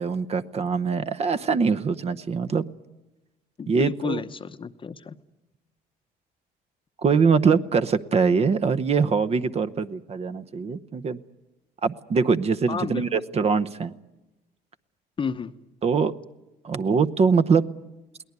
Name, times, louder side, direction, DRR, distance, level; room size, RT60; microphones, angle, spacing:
voice 1, 0.0-2.7 3.7-4.2 7.0-11.2 11.8-13.9 15.8-16.1 16.6-17.7, right 5 dB, 40° right, 12 dB, 0.9 m, -23 dB
voice 2, 3.6-5.2 12.7-13.2 15.2-15.5, left 6 dB, 30° left, 11 dB, 0.9 m, -31 dB
22.5 x 18.0 x 9.6 m, 1.0 s
cardioid pair, 110°, 17 cm